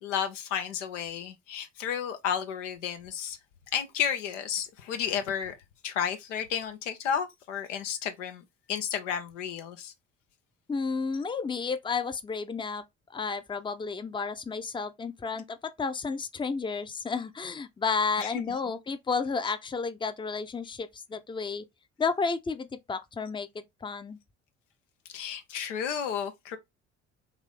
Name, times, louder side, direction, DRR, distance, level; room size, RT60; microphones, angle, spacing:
voice 1, 0.0-3.4 3.7-5.5 5.8-9.9 18.2-18.6 25.1-26.6, left 8 dB, 85° left, 0.7 m, -32 dB
voice 2, 10.7-12.8 13.1-21.6 22.0-24.2, left 5 dB, 15° left, 0.5 m, -32 dB
3.7 x 2.6 x 3.3 m
hypercardioid pair, 50°, 36 cm